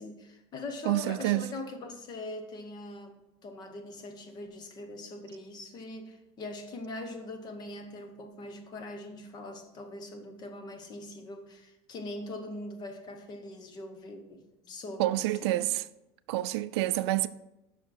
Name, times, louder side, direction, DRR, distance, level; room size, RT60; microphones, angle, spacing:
voice 1, 0.0-15.7, left 2 dB, 30° left, 0.9 m, -42 dB
voice 2, 0.9-1.5 15.0-15.8 16.3-17.3, right 16 dB, 80° right, 0.4 m, -28 dB
6.0 x 4.5 x 5.8 m
supercardioid pair, 150°, 14 cm